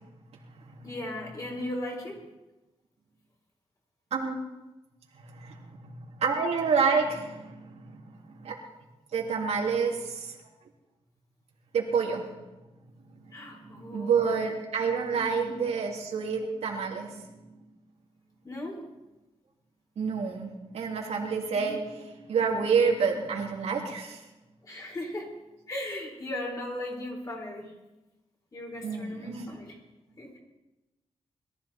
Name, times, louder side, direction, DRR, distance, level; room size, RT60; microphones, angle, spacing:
voice 1, 0.8-2.2 13.3-14.4 14.8-15.6 18.4-18.8 21.5-22.0 24.6-25.3 25.7-27.7 28.5-29.8 30.2-30.4, left 1 dB, 35° left, -1 dB, 4.5 m, -37 dB
voice 2, 5.3-8.0 8.4-8.6 9.1-10.3 11.7-12.2 13.9-17.1 20.0-21.8 22.3-24.2 28.8-29.6, right 5 dB, 90° right, -1 dB, 3.0 m, -28 dB
21.5 x 14.0 x 4.4 m, 1.0 s
wide cardioid pair, 140°, 11 cm